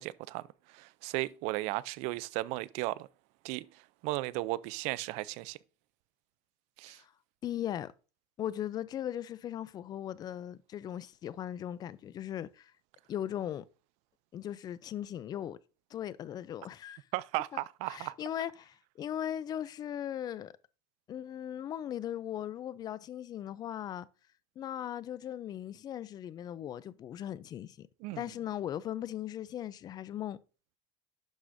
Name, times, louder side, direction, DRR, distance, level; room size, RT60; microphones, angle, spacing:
voice 1, 0.0-3.1 3.4-5.6 6.8-7.0 17.1-18.2 28.0-28.3, right 19 dB, 65° right, 0.4 m, -36 dB
voice 2, 7.4-7.9 8.4-12.7 13.1-13.6 14.3-15.6 15.9-17.0 17.5-17.6 17.9-20.5 21.1-24.1 24.6-27.9 28.2-30.4, left 11 dB, 30° left, 0.4 m, -38 dB
11.5 x 4.8 x 2.6 m
cardioid pair, 140°, 13 cm